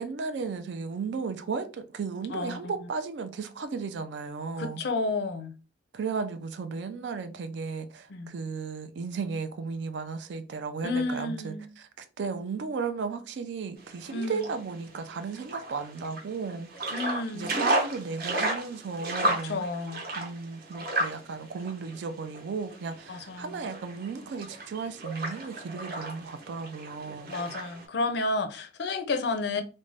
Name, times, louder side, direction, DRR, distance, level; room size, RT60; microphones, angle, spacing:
voice 1, 0.0-4.8 5.9-16.7 17.3-19.6 20.2-27.3, right 5 dB, 65° right, 0.4 m, -35 dB
voice 2, 2.3-2.7 4.6-5.5 8.1-8.3 10.8-11.7 14.1-14.4 16.9-17.6 19.2-20.0 23.1-23.6 27.3-29.6, left 3 dB, 60° left, 0.4 m, -31 dB
sound 1, 13.8-27.8, right 1 dB, 50° right, 0.8 m, -34 dB
2.5 x 2.1 x 3.2 m
head